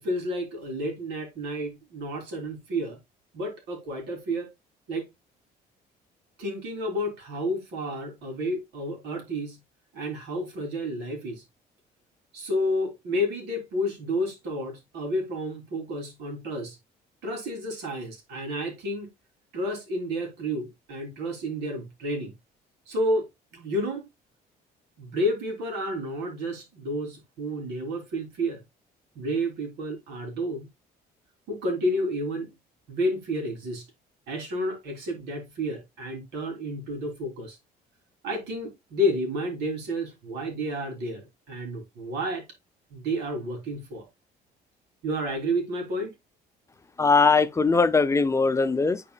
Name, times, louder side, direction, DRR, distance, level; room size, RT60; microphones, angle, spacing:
voice 1, 0.0-3.0 3.3-4.5 4.9-5.0 6.4-9.6 9.9-11.4 12.3-16.8 17.2-19.1 19.5-22.3 22.9-24.0 25.0-28.6 29.1-30.7 31.5-32.5 32.9-33.8 34.3-37.6 38.2-42.4 42.9-44.1 45.0-46.1, equal, 80° right, 3.2 m, -30 dB
voice 2, 47.0-49.0, left 4 dB, 15° left, 0.6 m, -20 dB
10.5 x 4.3 x 2.3 m
cardioid pair, 110°, 17 cm